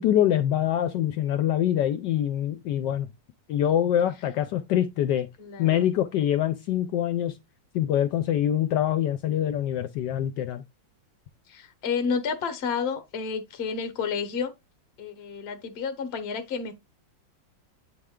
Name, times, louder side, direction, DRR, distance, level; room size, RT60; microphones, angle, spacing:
voice 1, 0.0-3.1 3.5-5.3 5.6-7.3 7.7-10.6, left 11 dB, 75° left, 1.1 m, -24 dB
voice 2, 5.4-5.9 11.5-14.5 15.0-16.7, left 6 dB, 45° left, 1.0 m, -30 dB
8.6 x 3.2 x 3.6 m
omnidirectional pair, 2.1 m